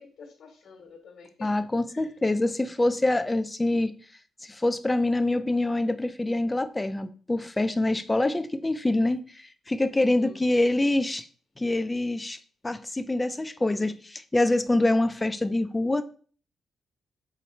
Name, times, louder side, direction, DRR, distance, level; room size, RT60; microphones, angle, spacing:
voice 1, 0.0-1.5 1.9-2.1 9.9-10.4, left 4 dB, 75° left, 1 dB, 1.2 m, -49 dB
voice 2, 1.4-3.9 4.4-11.3 11.6-12.4 12.6-16.0, left 2 dB, 20° left, 11 dB, 0.4 m, -25 dB
4.5 x 3.7 x 3.1 m, 0.41 s
cardioid pair, 85°, 0 cm